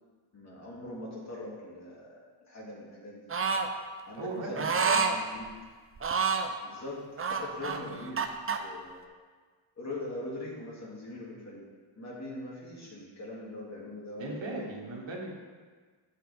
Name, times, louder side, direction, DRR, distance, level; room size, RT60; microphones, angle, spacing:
voice 1, 0.3-3.3 4.1-5.5 6.6-8.2 8.6-9.0 9.8-11.6 12.0-14.6, left 1 dB, 35° left, -5 dB, 2.5 m, -42 dB
sound 1, 3.3-3.7 4.6-5.2 6.0-6.5 7.2-8.6, right 5 dB, 30° right, 0.6 m, -28 dB
voice 2, 4.2-4.7 14.2-15.3, right 2 dB, 65° right, -3 dB, 2.0 m, -37 dB
13.5 x 5.5 x 3.5 m, 1.5 s
wide cardioid pair, 120°, 48 cm